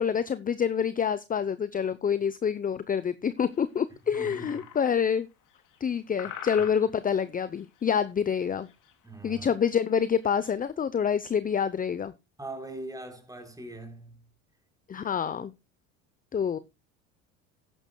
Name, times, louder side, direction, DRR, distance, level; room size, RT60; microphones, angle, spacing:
voice 1, 0.0-5.3 5.8-8.7 9.2-12.1 14.9-15.5 16.3-16.6, left 7 dB, 20° left, 0.7 m, -27 dB
sound 1, 3.5-3.6 4.1-5.0 5.5-5.9 6.2-7.2 7.5-7.9 8.4-8.9 9.2-9.3 9.7-9.8 10.2-10.5, left 9 dB, 55° left, 2.7 m, -43 dB
voice 2, 4.1-4.6 6.6-6.7 9.0-9.5 12.4-14.2, right 2 dB, 10° right, 3.8 m, -41 dB
14.5 x 11.0 x 2.2 m
hypercardioid pair, 85°, 38 cm